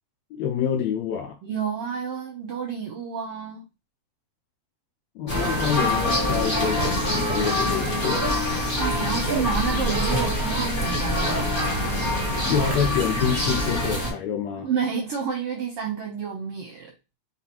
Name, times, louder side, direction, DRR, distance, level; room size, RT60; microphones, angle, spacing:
voice 1, 0.3-1.4 5.2-8.3 12.5-14.7, left 8 dB, 80° left, 1.6 m, -27 dB
voice 2, 1.4-3.6 8.7-11.6 14.6-16.9, right 6 dB, 70° right, 1.5 m, -29 dB
sound 1, 5.3-14.1, left 1 dB, 45° left, 0.6 m, -25 dB
Zipper (clothing), 5.6-13.2 13.6-13.7, right 4 dB, 25° right, 1.2 m, -37 dB
4.2 x 4.0 x 2.9 m
omnidirectional pair, 3.5 m